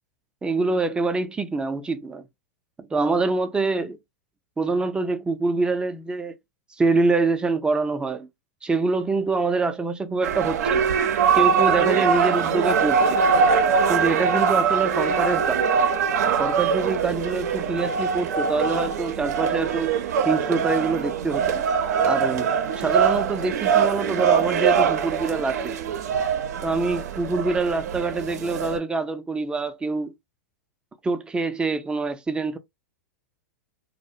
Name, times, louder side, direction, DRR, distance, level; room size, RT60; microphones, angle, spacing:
voice 1, 0.4-2.2 2.8-4.0 4.6-6.4 6.8-8.3 8.6-10.9 11.3-13.2 13.9-15.7 16.4-19.9 20.2-21.7 22.0-22.5 22.8-25.8 26.6-30.1 31.0-32.6, right 3 dB, 10° right, 0.4 m, -25 dB
sound 1, 10.2-28.8, right 6 dB, 75° right, 0.5 m, -22 dB
2.3 x 2.0 x 2.7 m
hypercardioid pair, 115°, 9 cm